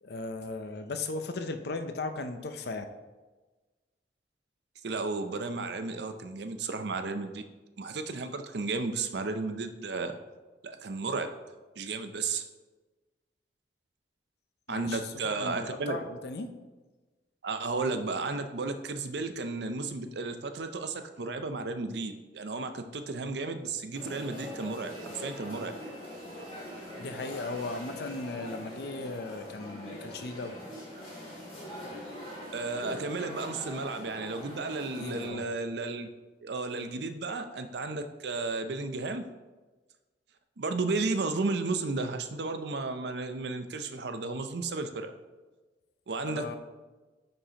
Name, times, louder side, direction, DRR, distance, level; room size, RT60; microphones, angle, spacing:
voice 1, 0.0-2.8 14.7-16.5 27.0-30.6 35.0-35.5 46.3-46.6, left 3 dB, 60° left, 8 dB, 0.6 m, -37 dB
voice 2, 4.8-7.4 7.8-10.1 10.6-11.3 11.8-12.4 14.7-16.0 17.4-25.7 32.5-36.1 36.4-39.2 40.6-45.1 46.1-46.6, right 3 dB, 65° right, 8 dB, 0.6 m, -33 dB
sound 1, 23.9-35.3, left 1 dB, 35° left, 2.2 m, -42 dB
9.8 x 5.3 x 2.9 m, 1.2 s
head